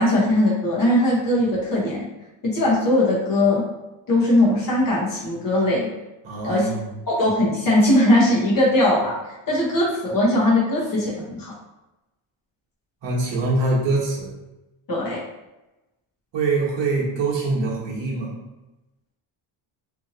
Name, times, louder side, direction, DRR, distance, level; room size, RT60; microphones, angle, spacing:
voice 1, 0.0-2.0 2.4-3.6 4.1-5.9 6.4-6.7 7.1-9.2 9.5-11.5 14.9-15.2, left 1 dB, 40° left, -5 dB, 1.0 m, -20 dB
voice 2, 6.2-6.9 13.0-14.3 16.3-18.3, right 3 dB, 60° right, -4 dB, 1.0 m, -24 dB
2.8 x 2.7 x 2.6 m, 1.0 s
cardioid pair, 160°, 50 cm